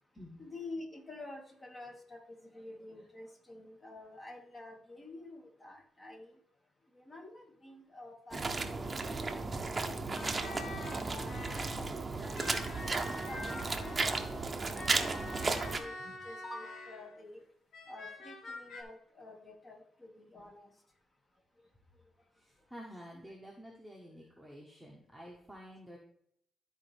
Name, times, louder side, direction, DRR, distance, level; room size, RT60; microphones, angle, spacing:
voice 1, 0.4-6.3 6.9-9.3 9.5-10.5 11.0-14.4 14.9-17.4 17.9-20.7, left 2 dB, 30° left, 0 dB, 2.2 m, -49 dB
sound 1, 8.3-15.8, right 3 dB, 30° right, 0.9 m, -34 dB
sound 2, 10.1-12.0 12.4-17.2 17.7-18.8, left 2 dB, 75° left, 1.5 m, -46 dB
voice 2, 22.3-26.0, equal, ahead, -2 dB, 1.5 m, -50 dB
13.0 x 4.5 x 3.6 m, 0.68 s
cardioid pair, 105°, 0 cm